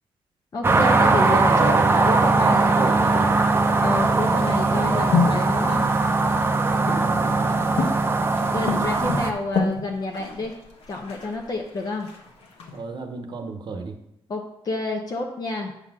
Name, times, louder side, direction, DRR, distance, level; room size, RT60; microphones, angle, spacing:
voice 1, 0.5-1.7 2.1-3.2 3.8-5.9 8.5-10.5 10.9-12.1 14.3-15.7, left 2 dB, 40° left, 0 dB, 0.8 m, -29 dB
sound 1, 0.6-9.3, right 3 dB, 25° right, 0.6 m, -20 dB
voice 2, 1.3-2.1 2.4-3.4 4.6-5.1 6.6-7.6 12.7-14.0, right 4 dB, 50° right, 6 dB, 0.9 m, -32 dB
sound 2, 3.9-12.8, left 4 dB, 80° left, 1.5 m, -30 dB
8.2 x 4.1 x 6.1 m, 0.81 s
wide cardioid pair, 145°, 10 cm